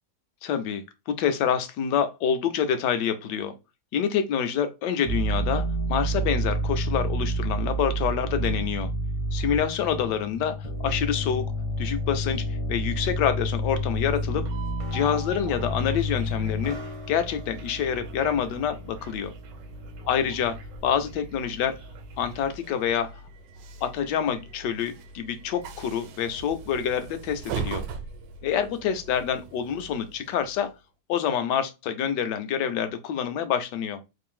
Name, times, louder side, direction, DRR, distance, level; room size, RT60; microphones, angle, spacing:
voice 1, 0.4-3.5 3.9-8.9 9.3-11.4 11.8-14.4 14.9-16.8 17.1-19.3 20.1-20.6 20.8-21.8 22.2-23.2 23.8-27.8 28.4-30.7 31.1-34.0, left 8 dB, 75° left, 1.2 m, -27 dB
sound 1, 5.1-22.5, equal, 50° right, 0.4 m, -30 dB
Train, 13.4-30.7, right 5 dB, 85° right, 1.3 m, -42 dB
3.2 x 2.5 x 3.6 m
omnidirectional pair, 1.9 m